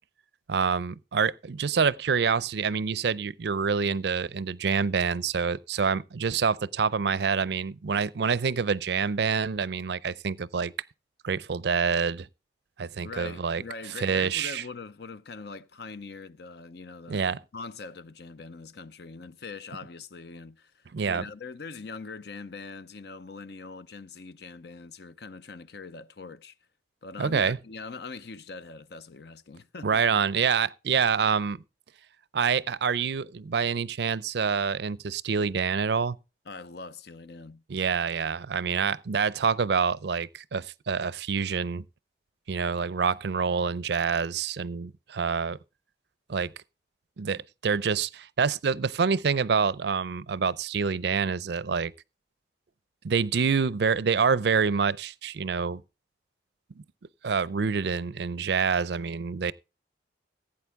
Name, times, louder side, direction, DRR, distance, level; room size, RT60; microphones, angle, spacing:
voice 1, 0.5-10.7 11.2-12.3 12.8-13.6 14.0-14.6 17.1-17.4 20.9-21.3 27.2-27.6 29.8-31.6 32.3-36.2 37.7-41.8 42.5-45.6 46.3-46.5 47.2-51.9 53.0-55.8 56.8-56.9 57.2-59.5, right 5 dB, 60° right, 0.5 m, -27 dB
voice 2, 13.0-26.5 27.0-30.0 36.5-37.6, left 4 dB, 60° left, 0.6 m, -42 dB
15.5 x 8.7 x 3.5 m
head